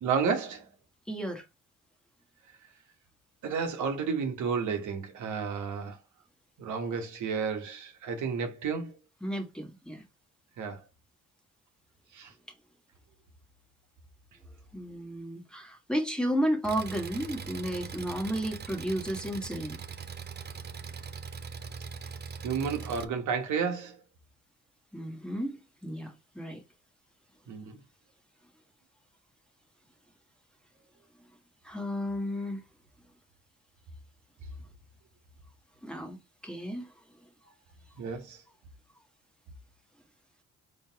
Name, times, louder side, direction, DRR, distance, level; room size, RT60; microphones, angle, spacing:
voice 1, 0.0-0.7 3.4-6.0 6.6-8.9 10.6-10.8 12.1-12.3 22.4-24.0 27.5-27.8 38.0-38.4, right 6 dB, 75° right, 1.3 m, -31 dB
voice 2, 1.1-1.4 9.2-10.0 14.7-19.8 24.9-26.6 31.6-32.6 35.8-36.2 36.4-36.9, equal, 5° left, 1.3 m, -33 dB
Engine, 16.6-23.0, right 6 dB, 35° right, 0.7 m, -41 dB
4.3 x 3.4 x 3.5 m
cardioid pair, 90°, 30 cm